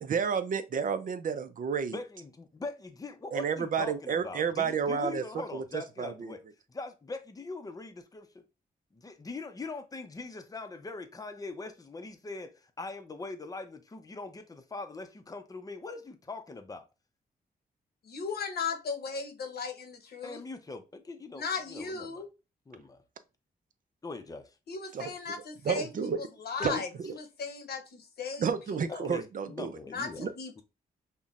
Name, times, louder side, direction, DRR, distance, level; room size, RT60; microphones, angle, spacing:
voice 1, 0.0-2.0 3.3-5.2 5.5-6.3 24.9-25.1 25.6-26.2 26.6-26.7 28.4-29.7 30.2-30.3, right 6 dB, 55° right, 0.5 m, -31 dB
voice 2, 1.9-6.4 6.7-8.4 8.9-16.8 20.2-22.2 22.7-23.0 24.0-24.5 26.6-26.8 29.0-30.3, left 3 dB, 20° left, 0.6 m, -42 dB
voice 3, 18.1-20.4 21.3-22.3 24.7-25.9 26.2-28.5 28.9-29.1 29.9-30.6, left 5 dB, 80° left, 0.9 m, -36 dB
5.5 x 2.1 x 2.4 m
wide cardioid pair, 110°, 16 cm